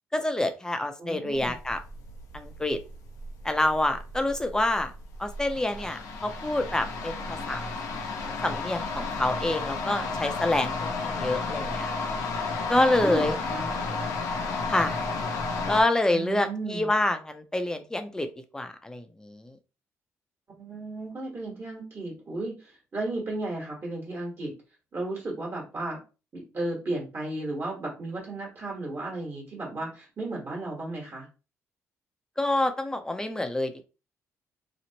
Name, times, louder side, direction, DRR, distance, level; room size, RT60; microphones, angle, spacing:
voice 1, 0.1-1.8 2.3-2.8 3.4-4.9 5.2-7.6 8.4-11.9 12.7-13.4 14.7-15.0 15.7-18.3 18.5-19.5 32.4-33.9, left 1 dB, 10° left, 7 dB, 0.5 m, -27 dB
voice 2, 1.0-1.5 13.0-13.7 16.1-16.9 20.5-24.5 24.9-26.0 26.3-31.3, right 2 dB, 45° right, -3 dB, 1.4 m, -34 dB
sound 1, 1.3-15.8, left 3 dB, 80° left, 0.6 m, -33 dB
2.9 x 2.0 x 2.8 m, 0.32 s
cardioid pair, 80°, 6 cm